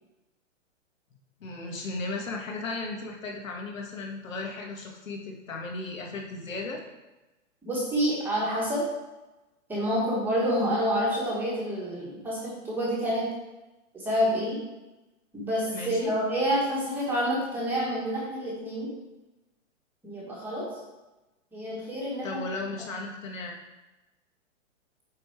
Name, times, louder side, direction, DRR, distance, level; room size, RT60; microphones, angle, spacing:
voice 1, 1.4-6.8 15.7-16.1 22.2-23.6, left 3 dB, 85° left, 1 dB, 2.0 m, -35 dB
voice 2, 7.6-8.9 9.7-13.3 13.9-14.6 15.3-18.9 20.0-20.7 21.5-22.4, equal, 5° right, -7 dB, 1.2 m, -28 dB
8.8 x 4.0 x 4.7 m, 1.1 s
hypercardioid pair, 170°, 38 cm